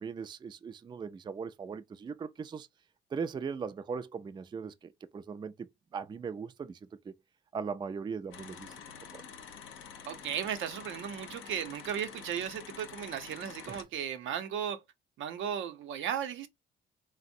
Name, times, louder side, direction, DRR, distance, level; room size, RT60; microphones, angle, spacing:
voice 1, 0.0-2.7 3.1-6.8 7.1-7.2 7.5-8.7 9.1-9.2 13.7-13.8, right 5 dB, 25° right, 0.3 m, -39 dB
sound 1, 8.3-13.8, left 7 dB, 85° left, 0.7 m, -48 dB
voice 2, 10.1-14.8 15.2-16.5, right 9 dB, 75° right, 0.6 m, -36 dB
3.4 x 2.0 x 2.6 m
cardioid pair, 90°, 20 cm